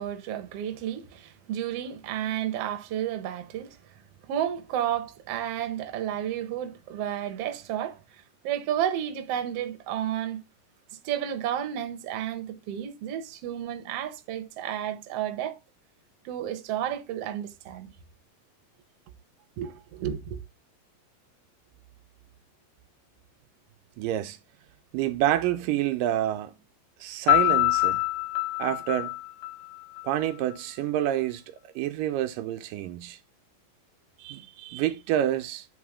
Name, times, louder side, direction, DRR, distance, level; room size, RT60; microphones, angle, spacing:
voice 1, 0.0-3.8 4.3-10.4 11.0-15.6 16.2-17.9 19.6-20.4, right 10 dB, 65° right, 1.6 m, -32 dB
voice 2, 24.0-24.4 24.9-26.6 27.0-28.0 28.6-29.1 30.0-31.4 31.8-33.2 34.2-35.7, right 12 dB, 85° right, 2.3 m, -28 dB
Piano, 27.3-30.1, left 19 dB, 55° left, 1.7 m, -25 dB
9.4 x 4.3 x 3.6 m
omnidirectional pair, 3.9 m